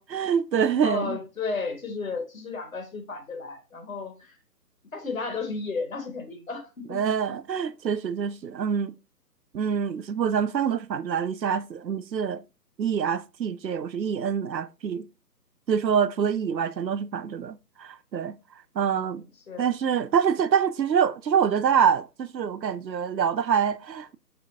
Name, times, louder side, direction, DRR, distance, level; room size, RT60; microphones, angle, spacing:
voice 1, 0.1-1.2 6.9-9.0 9.5-12.4 12.8-15.1 15.7-18.4 18.8-19.2 19.6-24.2, right 7 dB, 85° right, 0.6 m, -25 dB
voice 2, 0.8-4.4 4.9-7.0 18.9-19.2 19.5-19.7, left 4 dB, 55° left, 1.5 m, -33 dB
5.5 x 3.4 x 2.6 m
figure-of-eight pair, 140°, 49 cm